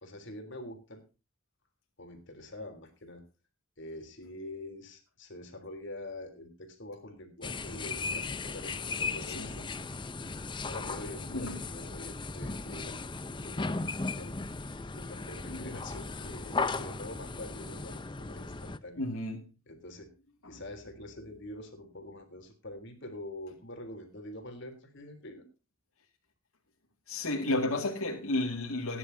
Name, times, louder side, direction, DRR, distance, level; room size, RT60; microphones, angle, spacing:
voice 1, 0.0-1.0 2.0-3.2 3.8-9.7 10.7-13.0 13.3-14.5 15.0-19.0 19.7-20.1 20.5-25.5, left 1 dB, 55° left, 3.5 m, -45 dB
sound 1, 7.4-18.8, left 3 dB, 20° left, 0.6 m, -37 dB
voice 2, 9.3-9.6 11.3-11.6 15.5-15.8 19.0-19.5 20.4-20.6 27.1-29.0, left 2 dB, 85° left, 2.2 m, -33 dB
19.0 x 10.5 x 2.8 m
head